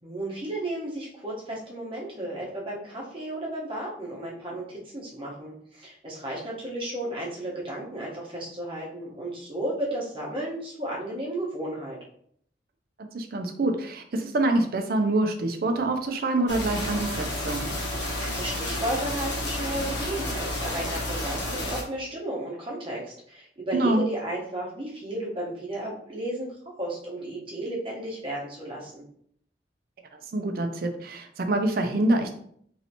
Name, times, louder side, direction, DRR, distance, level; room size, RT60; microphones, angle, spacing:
voice 1, 0.0-12.0 17.9-29.0, right 1 dB, 30° right, -4 dB, 0.9 m, -33 dB
voice 2, 13.0-17.7 23.7-24.0 30.3-32.3, right 2 dB, 55° right, 5 dB, 0.4 m, -26 dB
sound 1, 16.5-21.8, left 1 dB, 85° left, 1.1 m, -31 dB
3.1 x 2.8 x 2.8 m, 0.65 s
head